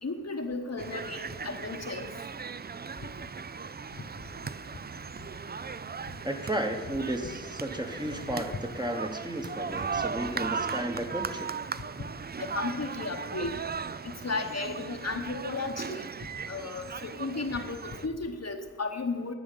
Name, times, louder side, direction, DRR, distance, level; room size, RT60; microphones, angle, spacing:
voice 1, 0.0-2.1 12.4-13.5 14.2-16.0 16.5-19.3, left 3 dB, 60° left, 5 dB, 1.0 m, -34 dB
sound 1, 0.8-18.1, right 5 dB, 35° right, 0.4 m, -37 dB
voice 2, 6.2-11.5, right 1 dB, 15° right, 3 dB, 1.1 m, -33 dB
11.0 x 5.0 x 8.2 m, 1.4 s
wide cardioid pair, 55°, 30 cm